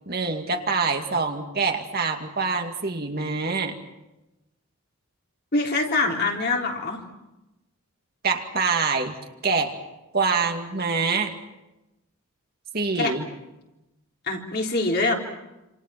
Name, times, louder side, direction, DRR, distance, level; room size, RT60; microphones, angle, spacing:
voice 1, 0.1-3.7 8.2-9.1 9.4-9.8 10.1-11.3 12.7-13.3, right 4 dB, 45° right, 4 dB, 2.3 m, -25 dB
voice 2, 5.5-7.0 13.0-13.1 14.3-15.1, left 3 dB, 45° left, 0 dB, 3.7 m, -24 dB
28.0 x 27.5 x 6.0 m, 0.98 s
head